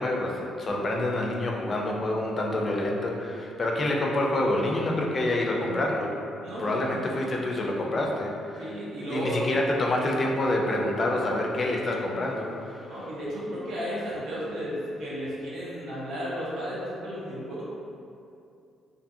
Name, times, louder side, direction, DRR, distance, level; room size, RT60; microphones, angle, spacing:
voice 1, 0.0-6.1 6.6-8.7 9.1-13.1, left 1 dB, 40° left, -1 dB, 0.4 m, -27 dB
voice 2, 6.4-7.1 8.6-9.4 12.9-17.6, equal, 85° right, -8 dB, 0.8 m, -34 dB
2.5 x 2.5 x 2.4 m, 2.6 s
cardioid pair, 90°, 0 cm